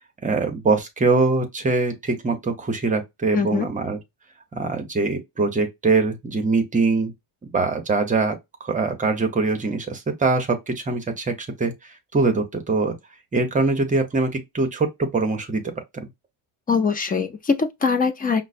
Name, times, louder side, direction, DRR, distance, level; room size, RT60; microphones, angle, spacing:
voice 1, 0.2-4.0 4.5-7.1 7.4-13.0 13.3-15.6 16.0-16.1, right 3 dB, 20° right, 0.7 m, -23 dB
voice 2, 3.3-3.7 16.7-18.5, left 5 dB, 25° left, 0.4 m, -22 dB
5.2 x 2.0 x 2.4 m
cardioid pair, 160°, 41 cm